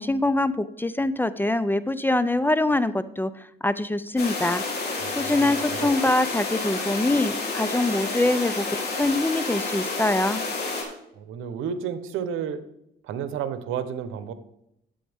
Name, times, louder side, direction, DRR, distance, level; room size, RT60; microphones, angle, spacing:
voice 1, 0.0-4.6 5.2-10.4, left 2 dB, 10° left, 14 dB, 0.5 m, -24 dB
sound 1, 4.2-10.8, left 3 dB, 55° left, 3.2 m, -30 dB
voice 2, 5.0-5.9 11.2-12.6 13.0-14.3, right 8 dB, 90° right, 11 dB, 1.0 m, -32 dB
11.5 x 8.5 x 3.6 m, 0.79 s
cardioid pair, 90°, 20 cm